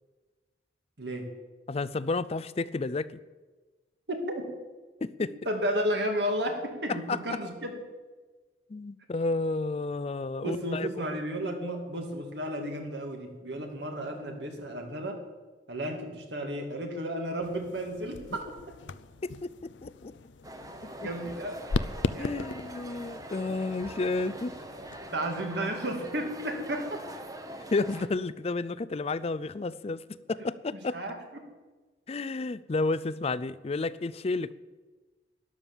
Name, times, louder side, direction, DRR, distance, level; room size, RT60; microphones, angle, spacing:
voice 1, 1.0-1.3 4.1-4.5 5.5-7.7 10.4-15.2 15.7-18.5 21.0-21.6 22.1-22.5 25.1-27.1 30.9-31.2, right 1 dB, 65° right, 4 dB, 2.3 m, -33 dB
voice 2, 1.7-3.2 5.0-5.3 7.1-7.2 8.7-11.2 19.4-20.1 22.2-24.5 27.7-30.0 30.3-31.0 32.1-34.5, left 3 dB, 35° left, 18 dB, 0.4 m, -31 dB
sound 1, 17.4-25.1, left 3 dB, 80° left, 0.5 m, -38 dB
sound 2, 20.4-28.1, right 1 dB, 20° right, 1.0 m, -43 dB
12.5 x 11.0 x 7.2 m, 1.3 s
head